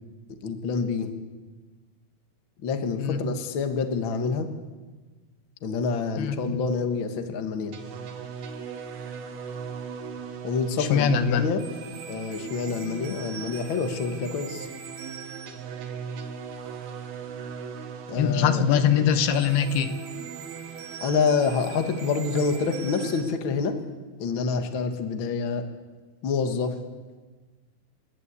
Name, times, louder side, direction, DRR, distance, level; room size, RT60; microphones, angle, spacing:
voice 1, 0.3-1.1 2.6-4.5 5.6-7.7 10.4-11.6 12.1-14.7 18.1-18.6 21.0-23.8 24.2-25.6 26.2-26.8, left 5 dB, 50° left, 6 dB, 1.5 m, -27 dB
voice 2, 6.2-6.6 10.8-11.5 18.1-19.9, left 8 dB, 80° left, 9 dB, 2.9 m, -22 dB
sound 1, 7.7-23.2, right 6 dB, 70° right, 3.5 m, -38 dB
29.0 x 11.0 x 8.4 m, 1.3 s
omnidirectional pair, 4.5 m